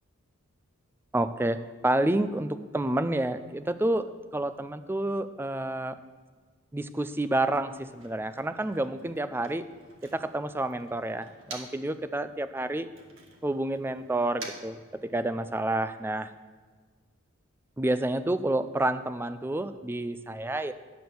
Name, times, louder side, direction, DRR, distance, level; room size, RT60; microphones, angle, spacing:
voice 1, 1.1-5.9 6.7-9.6 10.0-12.9 13.4-16.3 17.8-20.7, right 1 dB, 10° right, 11 dB, 0.3 m, -29 dB
Motor vehicle (road), 7.5-12.0 12.3-15.6, right 3 dB, 75° right, 1.5 m, -49 dB
9.4 x 6.1 x 6.8 m, 1.5 s
head